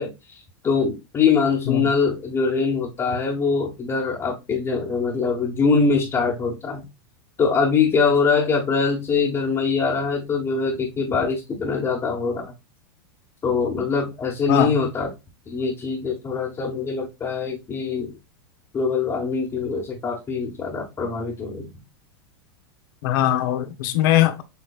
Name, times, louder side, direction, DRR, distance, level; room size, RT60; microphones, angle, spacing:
voice 1, 0.0-6.8 7.4-12.5 13.4-15.1 15.5-18.1 18.7-21.7, left 5 dB, 25° left, 1.3 m, -23 dB
voice 2, 23.0-24.4, left 13 dB, 60° left, 0.9 m, -20 dB
6.8 x 3.2 x 2.4 m
supercardioid pair, 125°, 13 cm